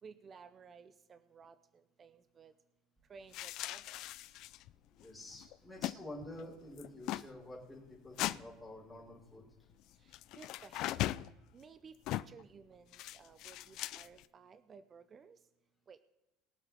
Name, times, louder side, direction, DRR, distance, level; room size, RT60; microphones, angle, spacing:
voice 1, 0.0-2.5 3.1-4.1 10.0-11.0 11.5-15.4 15.9-16.0, right 5 dB, 30° right, 12 dB, 0.6 m, -56 dB
sound 1, 3.3-4.7 5.0-5.1 5.3-6.0 6.2-6.4 6.8-7.3 8.2-8.4 10.1-11.3 12.1-12.4 12.9-14.2, left 15 dB, 55° left, 0.4 m, -39 dB
voice 2, 4.9-9.6, left 1 dB, 5° left, -6 dB, 4.7 m, -49 dB
22.0 x 7.4 x 3.5 m, 1.0 s
supercardioid pair, 130°, 0 cm